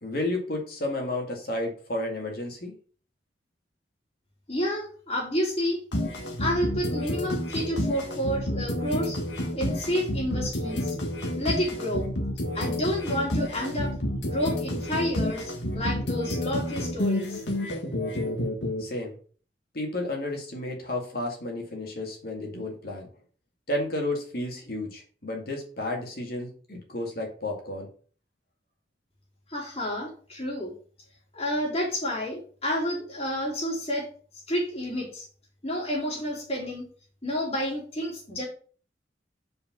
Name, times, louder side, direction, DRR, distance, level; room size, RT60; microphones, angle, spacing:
voice 1, 0.0-2.7 18.8-19.2 19.7-23.1 23.7-27.9, left 1 dB, 55° left, 1 dB, 2.2 m, -32 dB
voice 2, 4.5-5.8 6.4-9.2 9.5-10.9 11.4-12.1 12.5-17.4 29.5-30.7 31.3-34.1 34.5-35.3 35.6-36.8 37.2-38.5, equal, 35° left, -3 dB, 3.3 m, -30 dB
sound 1, 5.9-18.8, left 1 dB, 80° left, 1.6 m, -30 dB
5.1 x 5.0 x 5.9 m, 0.42 s
head